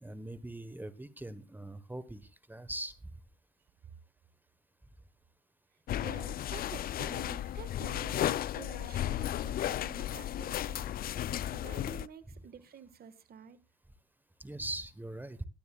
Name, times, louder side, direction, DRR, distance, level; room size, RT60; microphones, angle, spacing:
voice 1, 0.0-2.9 12.3-12.4 14.4-15.5, right 1 dB, 10° right, 1.1 m, -41 dB
sound 1, 5.9-12.1, left 12 dB, 45° left, 0.5 m, -34 dB
voice 2, 5.9-10.9 11.5-13.6, right 8 dB, 45° right, 1.6 m, -50 dB
17.5 x 11.5 x 2.3 m
supercardioid pair, 85°, 21 cm